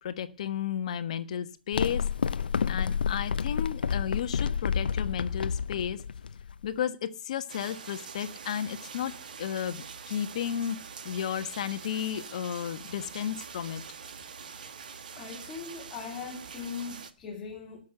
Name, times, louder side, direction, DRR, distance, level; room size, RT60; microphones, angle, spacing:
voice 1, 0.0-2.1 2.7-6.0 6.6-10.8 11.0-13.8, left 9 dB, 45° left, 10 dB, 1.3 m, -33 dB
sound 1, 1.7-6.8, left 6 dB, 70° left, 0.7 m, -29 dB
sound 2, 7.5-17.1, right 6 dB, 60° right, 1.6 m, -44 dB
voice 2, 15.1-17.8, left 5 dB, 15° left, -1 dB, 2.3 m, -40 dB
19.0 x 6.6 x 7.8 m, 0.37 s
hypercardioid pair, 155°, 5 cm